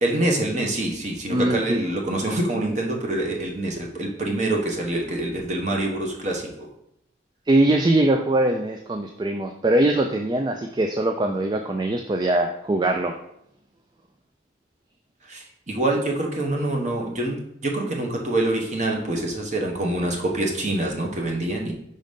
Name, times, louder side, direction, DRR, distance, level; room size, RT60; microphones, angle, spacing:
voice 1, 0.0-6.7 15.2-21.7, right 1 dB, 40° right, 1 dB, 1.0 m, -25 dB
voice 2, 1.3-1.8 7.5-13.1, right 1 dB, 20° right, 4 dB, 0.3 m, -22 dB
5.2 x 3.9 x 5.1 m, 0.76 s
head